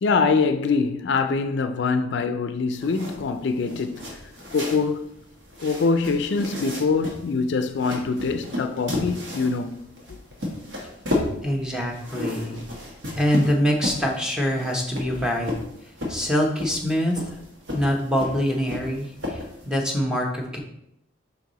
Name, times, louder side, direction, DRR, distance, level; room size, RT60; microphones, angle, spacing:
voice 1, 0.0-4.1 4.5-5.1 5.6-9.9, left 4 dB, 65° left, 0.4 m, -24 dB
sound 1, 2.7-19.7, left 1 dB, 65° right, 1.5 m, -33 dB
voice 2, 11.4-12.6 13.2-15.5 16.1-17.2 17.7-20.6, equal, 5° right, 0.9 m, -24 dB
5.4 x 4.6 x 3.9 m
head